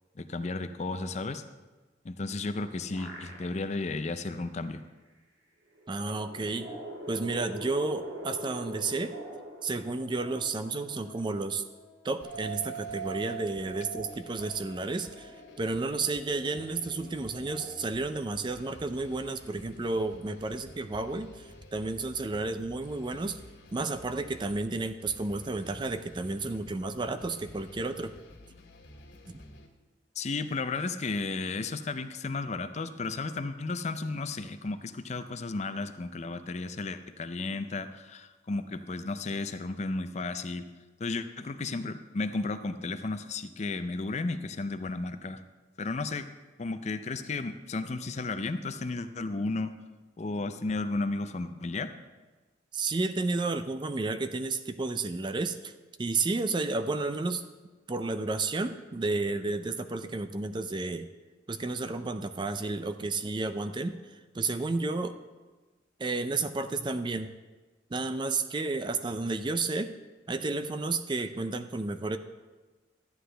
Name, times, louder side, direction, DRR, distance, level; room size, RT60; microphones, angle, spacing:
voice 1, 0.2-1.4 2.0-4.8 30.2-40.7 41.0-45.4 45.8-46.3 46.6-49.7 50.2-51.9, left 3 dB, 40° left, 10 dB, 0.5 m, -33 dB
sound 1, 2.4-3.9 4.3-4.4 5.7-10.5, right 1 dB, 85° right, 1.7 m, -43 dB
voice 2, 5.9-6.7 7.1-9.1 9.6-11.6 12.0-23.4 23.7-28.1 29.3-29.4 52.7-55.7 56.0-57.4 57.9-61.1 61.5-64.0 64.3-65.2 66.0-67.3 67.9-69.9 70.3-72.2, right 3 dB, 25° right, 10 dB, 0.4 m, -32 dB
sound 2, 6.2-17.9, right 5 dB, 40° right, 3.8 m, -45 dB
sound 3, 12.2-29.7, left 1 dB, 85° left, 1.8 m, -52 dB
13.0 x 9.5 x 3.4 m, 1.3 s
head